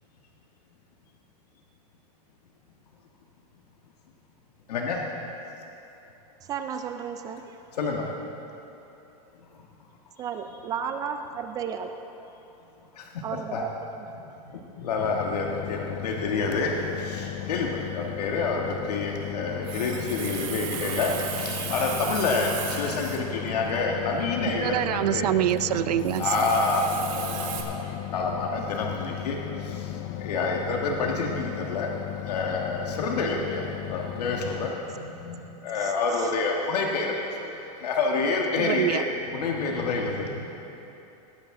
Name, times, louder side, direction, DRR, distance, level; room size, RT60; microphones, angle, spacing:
voice 1, 4.7-5.0 7.8-8.1 13.5-13.6 14.8-16.7 17.0-25.3 26.2-26.9 27.2-29.4 29.6-29.8 30.1-31.9 32.2-37.1 37.8-39.0 39.3-40.4, left 4 dB, 90° left, 0 dB, 1.5 m, -28 dB
voice 2, 6.4-7.6 10.2-11.9 13.2-14.3 35.7-36.3, right 7 dB, 20° right, 7 dB, 0.3 m, -34 dB
sound 1, 15.0-34.7, left 13 dB, 40° left, 0.5 m, -36 dB
Water tap faucet, 19.4-27.6, right 7 dB, 55° right, 1.7 m, -36 dB
voice 3, 24.6-26.3 38.6-39.0, right 13 dB, 85° right, 15 dB, 0.5 m, -25 dB
19.5 x 10.5 x 3.7 m, 2.9 s
supercardioid pair, 155°, 20 cm